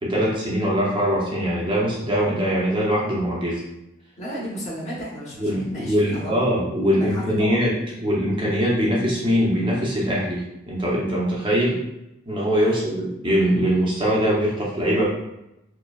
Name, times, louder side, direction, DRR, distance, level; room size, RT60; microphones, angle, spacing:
voice 1, 0.0-3.6 5.4-7.7 8.0-11.8 12.3-15.1, equal, 25° right, -5 dB, 0.7 m, -22 dB
voice 2, 4.2-6.5 6.9-7.6 12.6-12.8, right 1 dB, 35° left, -6 dB, 1.1 m, -34 dB
4.6 x 2.2 x 2.4 m, 0.88 s
head